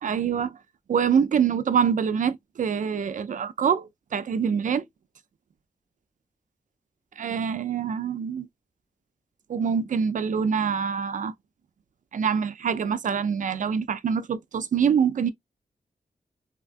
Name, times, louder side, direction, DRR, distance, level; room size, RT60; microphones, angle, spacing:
voice 1, 0.0-0.6 0.9-4.8 7.2-8.5 9.5-11.3 12.1-15.3, right 7 dB, 60° right, 0.4 m, -25 dB
3.4 x 2.3 x 2.4 m
wide cardioid pair, 105°, 15 cm